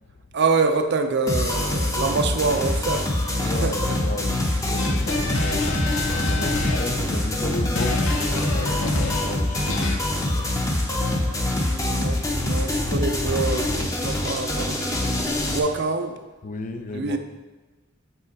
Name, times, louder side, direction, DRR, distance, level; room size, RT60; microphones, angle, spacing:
voice 1, 0.3-3.1 3.4-3.9 11.6-14.8 15.4-16.2 16.9-17.2, right 4 dB, 60° right, 6 dB, 0.6 m, -25 dB
sound 1, 1.3-15.6, left 1 dB, 15° left, 0.8 m, -25 dB
voice 2, 3.4-10.9 16.4-17.2, left 2 dB, 40° left, 7 dB, 0.5 m, -34 dB
sound 2, 4.8-10.0, left 2 dB, 85° left, 0.8 m, -28 dB
7.0 x 5.6 x 4.0 m, 1.2 s
head